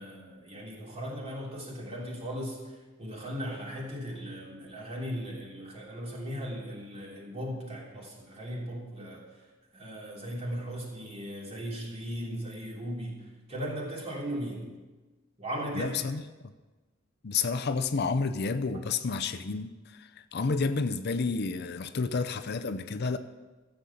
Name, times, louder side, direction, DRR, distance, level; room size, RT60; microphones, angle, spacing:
voice 1, 0.0-2.7 3.0-9.3 9.7-13.2 13.5-14.6 15.4-16.0, equal, 30° right, -3 dB, 3.2 m, -37 dB
voice 2, 15.7-16.5 17.2-23.2, left 4 dB, 55° left, 10 dB, 0.6 m, -30 dB
13.5 x 8.0 x 7.1 m, 1.2 s
head